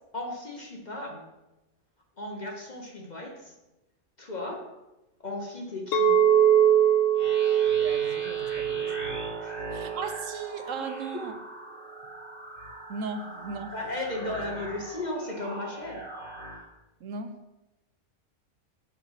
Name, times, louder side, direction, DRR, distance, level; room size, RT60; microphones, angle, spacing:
voice 1, 0.1-1.3 2.2-3.5 4.2-4.6 5.2-6.1 9.4-9.6 10.8-10.9 13.7-16.0, left 2 dB, 35° left, 0 dB, 1.2 m, -35 dB
Chink clink, 5.9-10.2, right 9 dB, 85° left, 1.0 m, -23 dB
sound 1, 7.1-16.6, right 1 dB, 45° right, 2.5 m, -41 dB
voice 2, 7.8-9.2 9.7-11.4 12.9-13.7 17.0-17.4, right 4 dB, 85° right, 7 dB, 1.2 m, -37 dB
11.5 x 4.2 x 4.0 m, 1.0 s
omnidirectional pair, 1.3 m